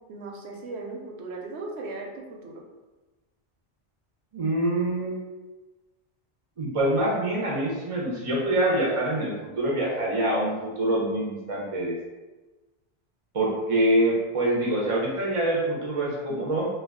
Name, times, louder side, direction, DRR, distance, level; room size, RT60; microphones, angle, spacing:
voice 1, 0.0-2.6, right 3 dB, 85° right, 0 dB, 0.8 m, -37 dB
voice 2, 4.3-5.2 6.6-12.0 13.3-16.7, right 1 dB, 45° right, -4 dB, 0.5 m, -25 dB
2.2 x 2.2 x 3.4 m, 1.2 s
omnidirectional pair, 1.1 m